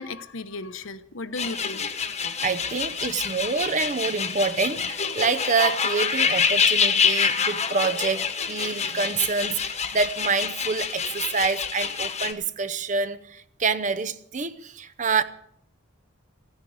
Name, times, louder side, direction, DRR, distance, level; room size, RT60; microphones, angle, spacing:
voice 1, 0.0-2.1, left 3 dB, 70° left, 1.0 m, -36 dB
sound 1, 1.4-12.3, left 6 dB, 30° left, 1.2 m, -26 dB
voice 2, 2.4-15.2, right 4 dB, 35° right, 0.7 m, -27 dB
16.0 x 9.7 x 8.0 m
head